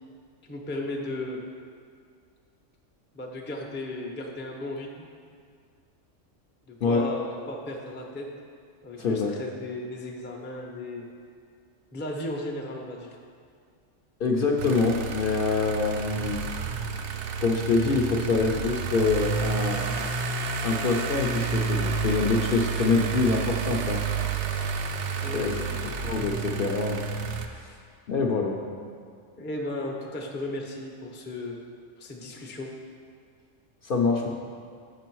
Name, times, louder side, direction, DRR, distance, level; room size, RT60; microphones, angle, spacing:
voice 1, 0.5-1.4 3.1-5.1 6.7-8.3 8.8-11.1 11.9-13.2 25.2-25.9 29.4-31.6 32.0-32.7, left 1 dB, 15° left, 0 dB, 0.4 m, -35 dB
voice 2, 6.8-7.1 9.0-9.4 14.2-16.4 17.4-24.0 25.3-25.5 26.0-27.0 27.5-27.8 28.1-28.6 33.8-34.3, left 4 dB, 60° left, 0 dB, 0.7 m, -25 dB
sound 1, 14.6-27.5, right 5 dB, 70° right, 0.8 m, -30 dB
6.7 x 6.0 x 4.6 m, 2.1 s
omnidirectional pair, 1.3 m